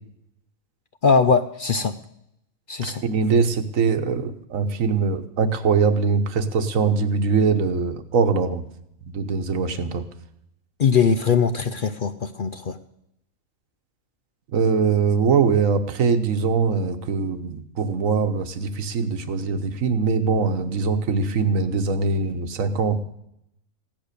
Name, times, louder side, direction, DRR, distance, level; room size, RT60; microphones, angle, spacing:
voice 1, 1.0-2.0 2.7-3.0 10.8-12.8, left 5 dB, 55° left, 10 dB, 0.6 m, -21 dB
voice 2, 2.8-8.6 9.0-10.1 14.5-23.0, right 5 dB, 65° right, 9 dB, 1.4 m, -22 dB
16.0 x 10.5 x 6.7 m, 0.77 s
omnidirectional pair, 1.5 m